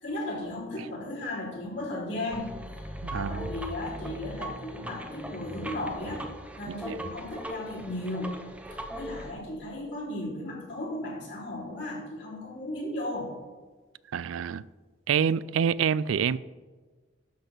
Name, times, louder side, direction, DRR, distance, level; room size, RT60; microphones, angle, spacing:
voice 1, 0.0-6.2 6.6-8.4 8.7-13.3, left 1 dB, 65° left, 3.4 m, -35 dB
sound 1, 2.3-9.3, equal, 5° right, 0.7 m, -39 dB
voice 2, 3.0-3.5 6.9-7.0 14.1-14.6 15.1-16.4, right 7 dB, 90° right, 0.3 m, -26 dB
12.0 x 4.2 x 6.7 m
head